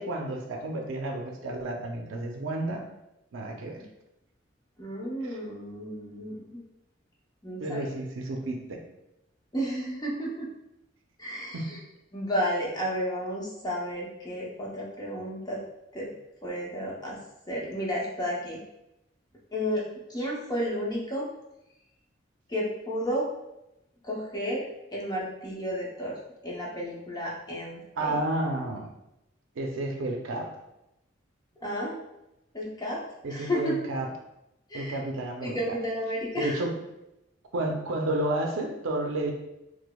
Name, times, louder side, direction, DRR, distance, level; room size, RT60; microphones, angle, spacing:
voice 1, 0.0-2.8 3.3-3.8 5.2-5.4 7.6-8.6 11.5-11.7 28.0-28.9 29.6-30.5 33.2-34.1 34.7-35.6 36.4-36.7 37.5-39.3, right 1 dB, 80° right, 2 dB, 0.5 m, -31 dB
voice 2, 4.8-6.6 7.4-7.9 9.5-10.5 11.2-11.8 12.1-15.6 15.9-16.1 16.4-17.2 17.5-18.6 19.5-19.8 20.1-21.3 22.5-23.3 24.0-24.6 24.9-26.2 26.4-28.2 31.6-31.9 32.5-33.0 33.3-33.8 34.7-35.0 35.4-36.6, equal, 20° left, -4 dB, 0.7 m, -32 dB
4.7 x 2.0 x 2.3 m, 0.88 s
head